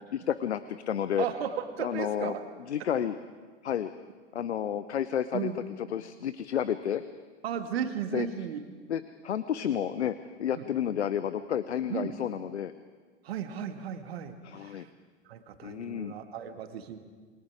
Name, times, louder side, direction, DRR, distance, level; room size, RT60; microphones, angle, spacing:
voice 1, 0.1-1.3 1.8-2.3 2.7-3.2 3.6-3.9 4.3-5.5 5.9-7.0 8.1-8.3 8.9-12.7 14.4-14.9 15.6-16.1, left 9 dB, 70° left, 13 dB, 0.8 m, -31 dB
voice 2, 1.2-2.4 5.3-5.6 7.4-8.6 10.5-10.7 11.9-12.2 13.2-14.9 15.3-17.0, right 8 dB, 60° right, 8 dB, 2.0 m, -35 dB
28.0 x 22.0 x 5.0 m, 1.5 s
figure-of-eight pair, 90°, 35 cm